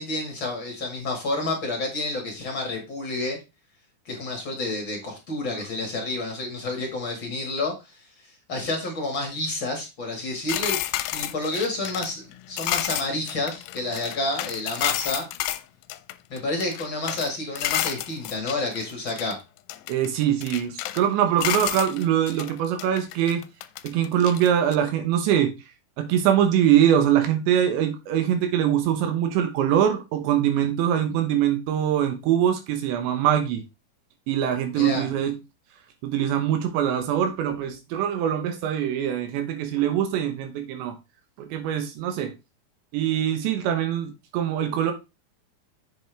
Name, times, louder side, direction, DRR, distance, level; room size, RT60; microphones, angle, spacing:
voice 1, 0.0-3.4 4.0-8.0 8.5-15.3 16.3-19.4 34.7-35.1, left 2 dB, 50° left, 1.4 m, -29 dB
sound 1, 10.5-15.6 15.9-17.3 17.6-19.3 19.7-21.1 21.4-22.5 22.8-24.8, left 15 dB, 80° left, 2.5 m, -30 dB
voice 2, 19.9-23.4 23.8-25.5 26.0-33.6 34.3-35.4 36.0-41.0 41.4-42.3 42.9-44.9, right 10 dB, 80° right, 3.3 m, -23 dB
7.9 x 7.1 x 3.4 m
omnidirectional pair, 5.1 m